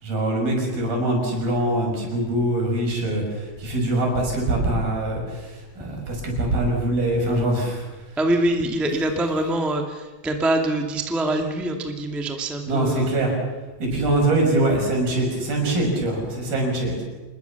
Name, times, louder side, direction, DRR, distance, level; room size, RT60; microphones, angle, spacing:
voice 1, 0.0-5.5 5.8-7.8 12.7-13.3 13.8-17.0, right 1 dB, 70° right, 1 dB, 7.6 m, -23 dB
voice 2, 8.2-13.1, right 1 dB, ahead, 3 dB, 0.9 m, -24 dB
26.0 x 21.0 x 7.0 m, 1.2 s
omnidirectional pair, 4.4 m